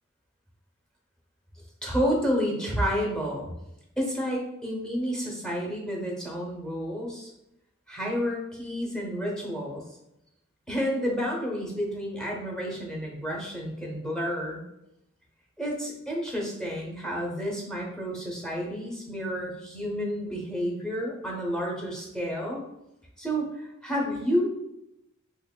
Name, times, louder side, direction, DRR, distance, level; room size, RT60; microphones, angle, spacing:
voice 1, 1.8-3.5 4.0-7.3 7.9-9.8 10.7-14.6 15.6-22.6 23.2-24.5, equal, 5° left, -2 dB, 0.8 m, -30 dB
4.0 x 3.0 x 2.2 m, 0.85 s
head